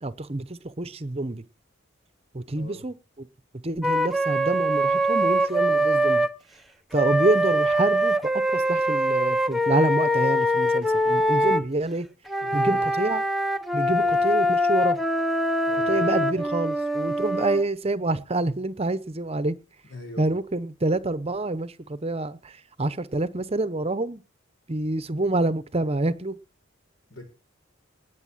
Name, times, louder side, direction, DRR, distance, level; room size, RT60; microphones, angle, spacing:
voice 1, 0.0-1.4 2.3-3.3 3.6-6.3 6.9-12.1 12.5-13.2 13.7-15.0 15.9-19.6 20.2-24.2 24.7-26.4, right 2 dB, 30° right, 14 dB, 0.8 m, -27 dB
Wind instrument woodwind instrument, 3.8-6.3 6.9-11.6 12.3-17.6, equal, ahead, 0.7 m, -23 dB
voice 2, 12.4-12.9 13.9-14.2 15.7-16.1 19.8-20.3 27.1-27.2, left 2 dB, 75° left, 5 dB, 6.6 m, -40 dB
19.5 x 7.0 x 7.4 m, 0.36 s
head